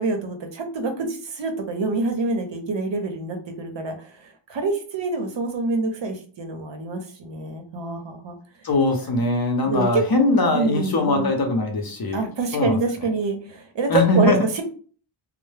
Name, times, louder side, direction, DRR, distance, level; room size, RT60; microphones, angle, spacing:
voice 1, 0.0-8.4 9.6-10.0 10.5-11.3 12.1-14.6, right 3 dB, 60° right, 5 dB, 0.7 m, -26 dB
voice 2, 8.6-12.2 12.5-12.8 13.9-14.4, left 2 dB, 45° left, 3 dB, 0.7 m, -21 dB
2.2 x 2.0 x 3.2 m, 0.42 s
wide cardioid pair, 75°, 49 cm